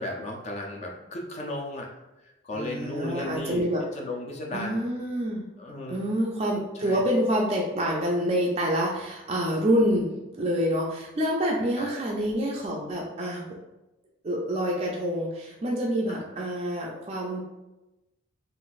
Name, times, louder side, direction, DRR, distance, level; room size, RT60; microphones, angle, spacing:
voice 1, 0.0-1.9 2.2-3.7 3.9-4.8 5.6-6.0 6.7-7.0 11.8-12.0 16.1-16.2, left 1 dB, 35° left, 0 dB, 0.4 m, -35 dB
voice 2, 2.5-3.8 4.5-5.4 5.9-10.1 10.4-13.5 14.2-17.4, equal, 30° right, -3 dB, 0.4 m, -27 dB
3.9 x 2.4 x 2.4 m, 1.0 s
head